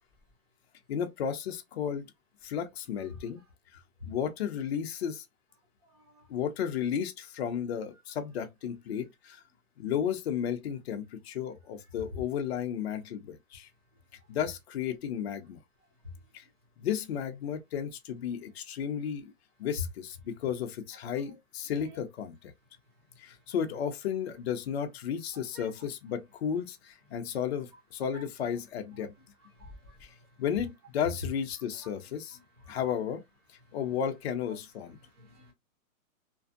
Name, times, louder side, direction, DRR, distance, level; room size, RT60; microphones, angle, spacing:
voice 1, 0.9-2.1 2.4-3.4 4.0-5.2 6.3-9.4 9.8-13.7 14.3-15.6 16.3-16.4 16.8-19.3 19.6-22.5 23.2-29.1 30.0-32.4 32.7-33.2 33.7-35.0, left 8 dB, 50° left, 0.5 m, -33 dB
voice 2, 5.9-6.2 21.8-21.9 25.3-25.7 28.1-28.2 29.6-30.0 32.7-32.8 35.2-35.5, equal, 20° right, 0.5 m, -52 dB
2.5 x 2.4 x 2.5 m
hypercardioid pair, 160°, 43 cm